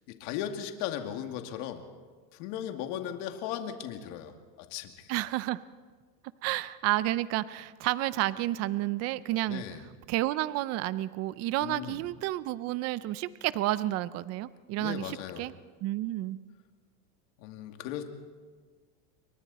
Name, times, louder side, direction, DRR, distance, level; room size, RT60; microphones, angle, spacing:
voice 1, 0.1-1.8 2.3-5.1 9.5-9.8 11.6-12.0 14.8-15.5 17.4-18.0, left 10 dB, 55° left, 5 dB, 2.5 m, -37 dB
voice 2, 5.1-5.6 6.4-9.6 10.1-15.5 15.8-16.4, right 16 dB, 35° right, 16 dB, 0.5 m, -30 dB
29.0 x 23.5 x 4.2 m, 1.5 s
supercardioid pair, 140°, 49 cm